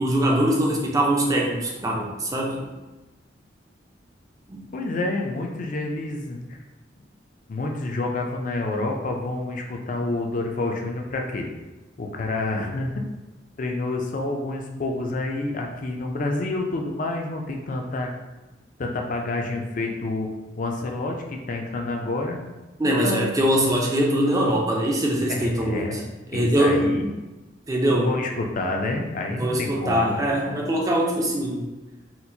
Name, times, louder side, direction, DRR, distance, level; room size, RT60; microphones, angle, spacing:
voice 1, 0.0-2.7 4.5-4.6 22.8-26.0 26.3-26.9 27.7-28.1 29.4-31.7, right 1 dB, 20° right, -1 dB, 0.4 m, -22 dB
voice 2, 4.7-6.6 7.5-11.5 12.0-12.9 13.6-18.1 18.8-20.3 20.6-22.4 22.8-23.3 25.3-26.0 26.3-27.1 28.0-30.2, left 2 dB, 45° left, 2 dB, 0.4 m, -28 dB
4.3 x 2.1 x 2.6 m, 1.1 s
head